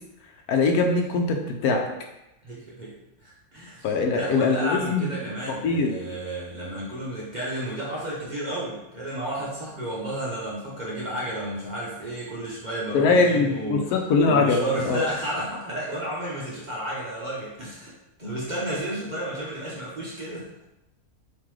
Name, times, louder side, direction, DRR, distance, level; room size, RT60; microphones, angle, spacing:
voice 1, 0.5-1.9 3.8-5.1 5.6-5.9 12.9-15.1, left 4 dB, 80° left, 2 dB, 1.1 m, -22 dB
voice 2, 2.4-2.9 3.2-13.9 14.2-17.9 18.2-20.4, right 1 dB, 40° right, -7 dB, 0.7 m, -32 dB
3.7 x 3.0 x 3.1 m, 0.91 s
omnidirectional pair, 1.6 m